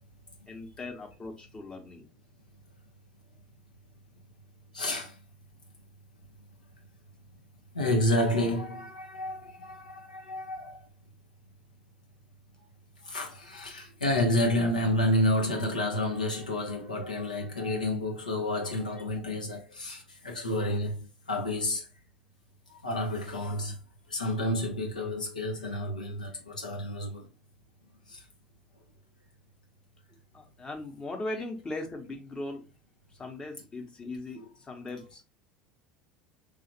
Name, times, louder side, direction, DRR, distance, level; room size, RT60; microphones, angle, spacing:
voice 1, 0.5-2.1 30.3-32.7 33.1-35.2, left 2 dB, 20° left, 0.8 m, -39 dB
voice 2, 4.7-5.2 7.7-10.8 13.0-21.9 22.8-23.8 24.1-27.3 28.1-28.2, left 1 dB, 80° left, 0.5 m, -30 dB
3.1 x 2.4 x 2.9 m
figure-of-eight pair, 70°, 4 cm